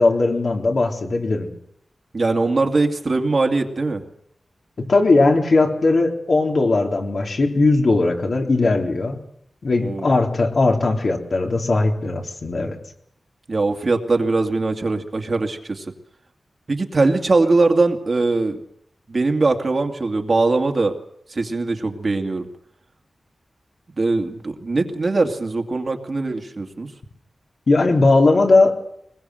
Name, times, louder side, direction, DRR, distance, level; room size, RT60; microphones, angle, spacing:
voice 1, 0.0-1.5 4.8-9.2 9.6-12.8 27.7-28.8, left 3 dB, 55° left, 2 dB, 3.8 m, -18 dB
voice 2, 2.1-4.0 9.8-10.1 13.5-15.8 16.7-18.6 19.1-21.0 21.3-22.5 24.0-26.9, right 3 dB, 45° right, 5 dB, 2.4 m, -21 dB
24.0 x 21.0 x 7.9 m, 0.71 s
wide cardioid pair, 130°, 0 cm